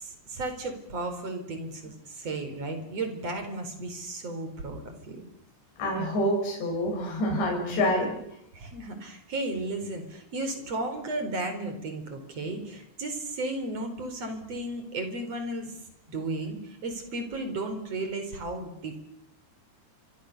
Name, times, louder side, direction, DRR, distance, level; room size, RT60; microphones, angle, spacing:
voice 1, 0.0-5.2 7.6-8.0 8.5-15.8 16.1-19.0, right 2 dB, 35° right, 7 dB, 5.2 m, -34 dB
voice 2, 5.8-8.1, left 1 dB, 80° left, -1 dB, 8.3 m, -27 dB
29.5 x 25.0 x 6.8 m, 0.78 s
omnidirectional pair, 5.0 m